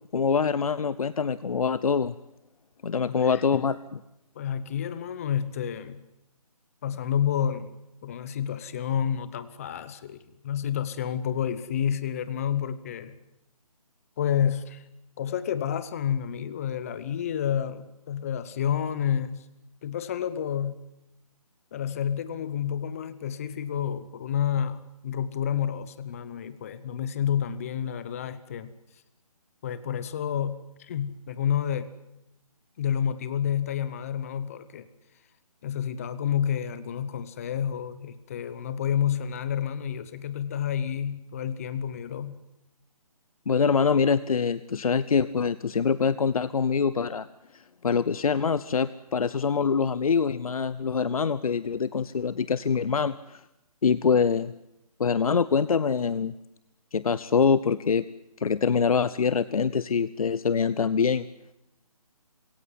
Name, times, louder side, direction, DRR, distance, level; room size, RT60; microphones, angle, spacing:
voice 1, 0.1-2.2 2.8-3.8 43.5-47.3 47.5-53.4 53.8-54.5 55.0-56.3 56.9-58.0 58.4-61.2, left 6 dB, 70° left, 16 dB, 0.7 m, -24 dB
voice 2, 3.1-3.4 4.3-6.0 6.8-13.2 14.2-14.8 15.2-19.4 19.8-20.8 21.7-28.7 29.6-31.9 32.8-34.9 35.6-42.4, left 9 dB, 25° left, 15 dB, 0.8 m, -29 dB
22.0 x 17.0 x 9.5 m, 0.86 s
hypercardioid pair, 165°, 19 cm